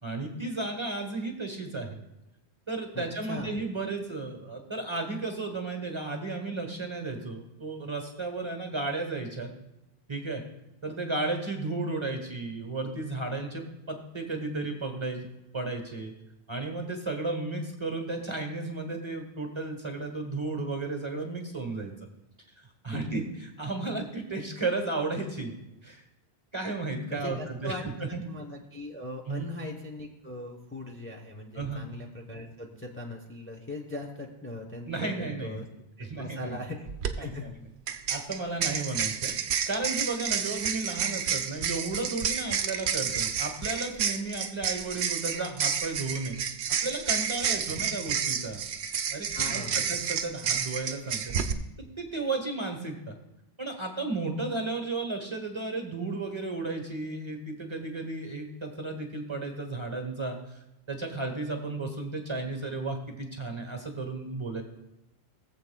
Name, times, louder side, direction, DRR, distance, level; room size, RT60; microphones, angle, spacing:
voice 1, 0.0-2.0 2.7-9.5 10.1-10.4 10.8-15.3 15.5-16.1 16.5-21.9 22.8-23.3 23.6-25.5 25.8-26.0 26.5-28.2 29.3-29.4 31.5-31.9 34.9-35.7 36.0-36.6 37.2-37.5 38.1-39.3 39.7-46.4 46.7-48.6 49.1-51.3 51.8-53.2 53.6-60.4 60.9-64.6, right 3 dB, 30° right, 4 dB, 1.1 m, -33 dB
voice 2, 2.9-3.5 22.9-23.0 27.1-27.9 28.2-35.7 36.0-36.9 37.2-37.5 47.5-47.6 49.3-49.9, left 2 dB, 15° left, 0 dB, 0.8 m, -40 dB
sound 1, 36.9-37.1 37.9-51.5, right 7 dB, 85° right, 0.9 m, -30 dB
18.0 x 7.5 x 2.3 m, 0.92 s
omnidirectional pair, 1.1 m